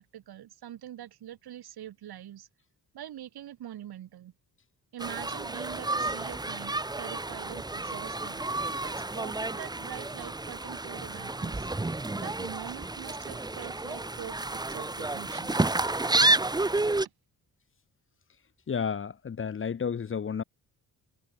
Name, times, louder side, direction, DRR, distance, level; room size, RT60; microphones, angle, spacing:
voice 1, 0.0-2.5 2.9-4.3 4.9-8.4 8.8-11.7 12.2-15.5, right 11 dB, 80° right, 2.0 m, -44 dB
sound 1, 5.0-17.1, right 2 dB, 10° right, 0.9 m, -30 dB
voice 2, 18.7-20.4, left 6 dB, 35° left, 0.9 m, -31 dB
wide cardioid pair, 135°, 38 cm